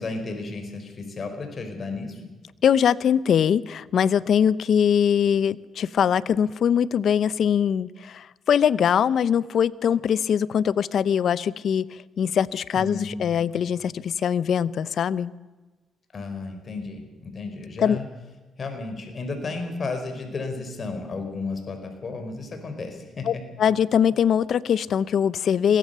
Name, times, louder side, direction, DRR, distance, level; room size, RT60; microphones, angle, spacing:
voice 1, 0.0-2.2 12.7-13.4 16.1-18.1 18.6-23.4, left 3 dB, 40° left, 5 dB, 4.7 m, -33 dB
voice 2, 2.6-15.3 17.8-18.0 23.2-25.8, left 8 dB, 60° left, 18 dB, 0.7 m, -22 dB
22.5 x 17.5 x 6.9 m, 1.2 s
cardioid pair, 90°, 0 cm